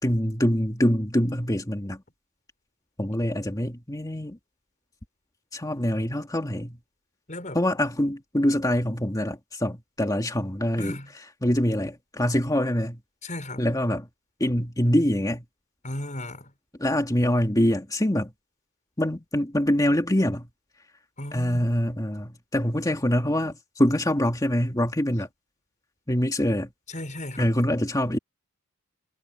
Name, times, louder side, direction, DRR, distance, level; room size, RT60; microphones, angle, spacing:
voice 1, 0.0-2.0 3.0-4.4 5.5-6.8 7.5-11.0 11.4-13.0 13.6-14.1 14.4-15.4 16.8-18.3 19.0-20.5 21.3-25.3 26.1-26.7 27.4-28.2, left 1 dB, 15° left, 2.3 m, -24 dB
voice 2, 10.8-11.1 13.2-13.7 15.8-16.5 21.2-21.7 26.9-27.5, left 1 dB, 35° left, 5.9 m, -35 dB
head